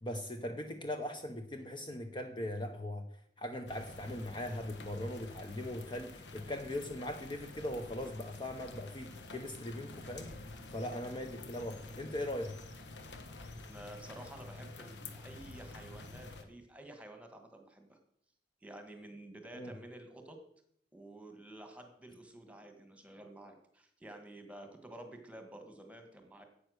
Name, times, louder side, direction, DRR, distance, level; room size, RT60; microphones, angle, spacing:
voice 1, 0.0-3.1 3.4-12.6 19.5-19.7, left 1 dB, 25° left, 5 dB, 0.9 m, -40 dB
sound 1, 3.7-16.4, left 2 dB, 70° left, 1.3 m, -49 dB
voice 2, 13.7-18.0 18.6-20.4 20.9-26.4, right 1 dB, 5° right, 5 dB, 1.5 m, -51 dB
10.0 x 8.3 x 6.4 m, 0.68 s
head